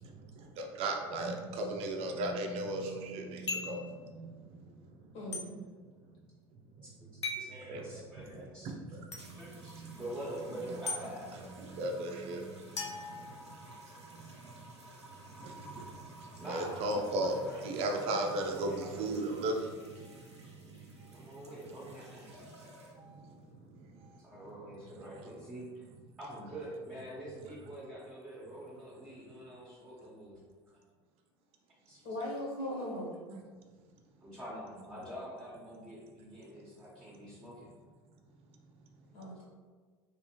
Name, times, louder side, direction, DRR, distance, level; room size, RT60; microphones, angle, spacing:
voice 1, 0.0-4.9 5.5-5.7 7.7-7.8 8.3-10.0 11.6-14.7 15.2-21.3 22.6-23.4 23.8-24.2 33.3-33.4, right 1 dB, 45° right, 3 dB, 0.6 m, -38 dB
sound 1, 3.5-3.8 5.3-5.5 7.2-7.5 9.1-9.2 10.9-11.0 12.8-13.8, left 3 dB, 90° left, 0.5 m, -38 dB
voice 2, 5.1-5.5 32.0-33.1 39.1-39.4, left 1 dB, 55° left, -5 dB, 1.4 m, -38 dB
voice 3, 7.4-8.8 9.2-11.3 13.8-13.9 16.4-16.8 17.2-19.8 21.1-22.3 24.2-25.9 26.2-30.4 30.7-30.8 31.9-32.0 34.2-37.7, right 1 dB, 5° right, -8 dB, 1.1 m, -46 dB
sound 2, 9.2-23.2 24.1-24.4, right 1 dB, 90° right, 0.6 m, -55 dB
3.3 x 3.1 x 3.0 m, 1.5 s
figure-of-eight pair, 75°, 14 cm